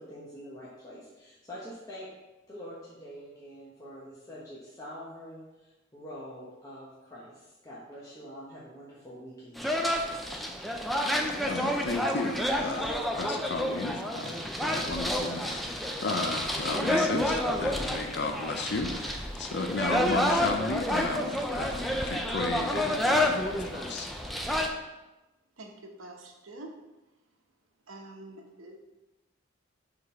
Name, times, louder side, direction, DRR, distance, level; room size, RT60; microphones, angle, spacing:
voice 1, 0.0-2.1 2.5-9.7, equal, 15° left, -8 dB, 1.0 m, -45 dB
sound 1, 9.6-24.7, left 1 dB, ahead, 0.4 m, -29 dB
voice 2, 11.4-24.1, left 3 dB, 55° left, 5 dB, 0.5 m, -34 dB
voice 3, 25.6-26.7 27.9-28.8, right 2 dB, 85° right, 2 dB, 1.0 m, -46 dB
4.8 x 3.9 x 5.5 m, 1.1 s
head